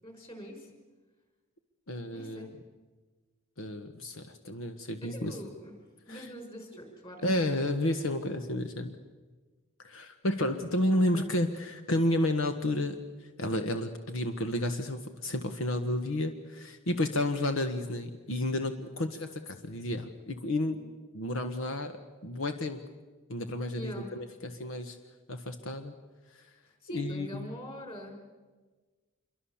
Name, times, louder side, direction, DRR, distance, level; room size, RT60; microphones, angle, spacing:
voice 1, 0.0-0.7 2.1-2.6 5.0-5.7 6.1-7.5 10.9-11.3 23.8-24.1 26.6-28.3, equal, 25° left, 4 dB, 5.4 m, -44 dB
voice 2, 1.9-2.5 3.6-5.4 6.1-6.3 7.2-9.0 9.8-21.9 22.2-22.8 23.3-25.0 25.3-25.9 26.3-26.5 26.9-27.5, left 1 dB, 80° left, 7 dB, 1.4 m, -31 dB
27.0 x 23.0 x 7.3 m, 1.3 s
head